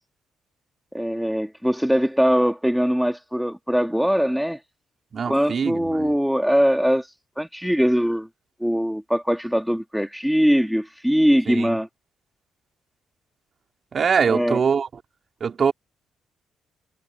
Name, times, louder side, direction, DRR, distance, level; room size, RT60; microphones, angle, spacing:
voice 1, 0.9-4.6 5.3-7.1 7.4-8.3 8.6-11.9 14.3-14.6, equal, ahead, 1.8 m, -21 dB
voice 2, 5.1-6.1 11.5-11.8 13.9-14.9 15.4-15.7, right 6 dB, 45° right, 3.6 m, -23 dB
cardioid pair, 90°, 0 cm